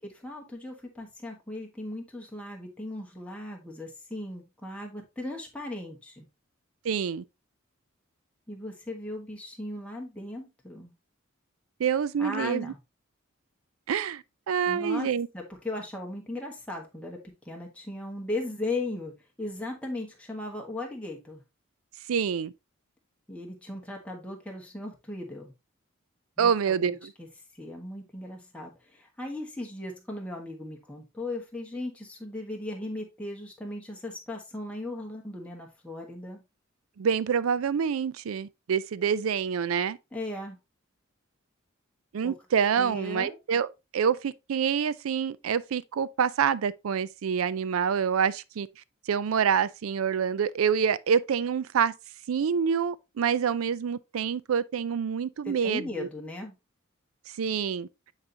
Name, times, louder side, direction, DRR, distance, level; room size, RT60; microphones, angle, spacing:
voice 1, 0.0-6.3 8.5-10.9 12.2-12.8 14.7-15.1 15.3-21.4 23.3-25.5 26.4-27.3 27.5-36.4 40.1-40.6 42.2-42.3 42.8-43.4 55.4-56.5, left 2 dB, 5° left, 1.4 m, -37 dB
voice 2, 6.8-7.2 11.8-12.7 13.9-15.3 22.1-22.5 26.4-27.1 37.0-40.0 42.1-43.7 43.9-48.7 49.1-51.9 52.3-56.1 57.4-57.9, right 7 dB, 85° right, 0.4 m, -27 dB
8.7 x 4.0 x 2.8 m
head